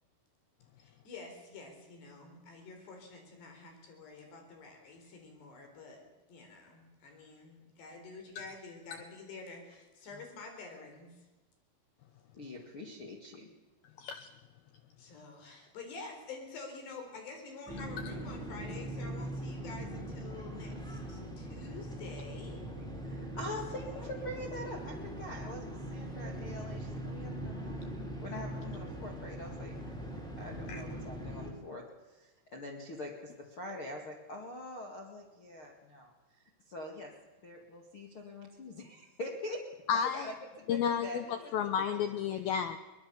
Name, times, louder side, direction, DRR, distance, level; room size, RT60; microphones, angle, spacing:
voice 1, 0.8-6.0 6.3-11.3 15.0-22.6 23.8-24.1, left 4 dB, 60° left, 4 dB, 6.3 m, -48 dB
voice 2, 12.3-13.5 23.0-28.0 28.2-29.8 30.4-37.1 37.4-39.6 40.1-41.5 41.8-42.0 42.3-42.6, left 1 dB, 45° left, 1 dB, 1.8 m, -44 dB
voice 3, 14.0-14.3 30.7-30.8 39.9-40.3 40.7-42.8, left 8 dB, 85° left, 10 dB, 2.1 m, -32 dB
sound 1, 17.7-31.5, right 1 dB, ahead, 3.5 m, -41 dB
23.0 x 20.0 x 7.0 m, 1.2 s
omnidirectional pair, 5.4 m